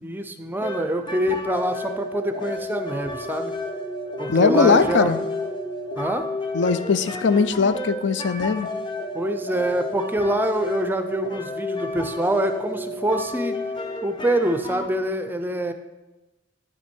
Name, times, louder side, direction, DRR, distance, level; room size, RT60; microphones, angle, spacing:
voice 1, 0.0-3.5 4.2-5.2 6.0-6.3 9.1-13.6 14.0-15.7, right 1 dB, 10° right, 7 dB, 0.5 m, -25 dB
sound 1, 0.6-14.9, left 2 dB, 25° left, 0.9 m, -31 dB
voice 2, 4.3-5.2 6.5-8.7, left 4 dB, 65° left, 12 dB, 0.5 m, -20 dB
9.5 x 5.9 x 4.5 m, 1.1 s
head